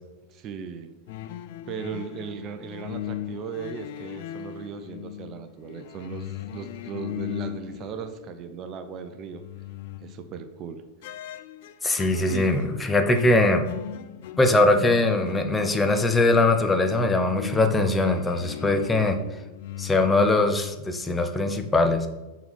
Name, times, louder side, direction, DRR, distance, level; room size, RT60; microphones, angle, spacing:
voice 1, 0.3-0.9 1.7-9.4 10.0-10.8 12.3-12.5, right 7 dB, 35° right, 9 dB, 0.6 m, -37 dB
sound 1, 1.1-8.6 8.9-10.5 11.0-20.8, left 12 dB, 50° left, 0.4 m, -38 dB
voice 2, 11.8-13.6 14.4-19.2 19.8-22.1, left 2 dB, 10° left, 5 dB, 0.7 m, -21 dB
6.8 x 4.1 x 6.2 m, 1.1 s
figure-of-eight pair, 90°, 0 cm